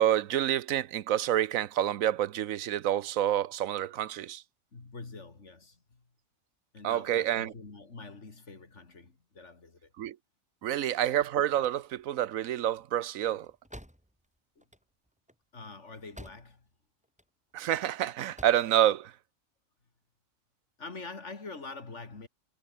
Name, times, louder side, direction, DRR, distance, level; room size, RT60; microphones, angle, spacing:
voice 1, 0.0-4.4 6.8-7.5 10.0-10.2 10.6-13.5 17.5-19.1, right 11 dB, 90° right, 1.2 m, -28 dB
voice 2, 4.7-6.1 6.7-9.9 10.6-10.7 14.6-14.7 15.5-16.7 20.8-22.3, left 3 dB, 60° left, 3.1 m, -45 dB
sound 1, 11.6-16.8 17.0-17.8 18.1-18.7, equal, 5° right, 5.0 m, -52 dB
omnidirectional pair, 1.4 m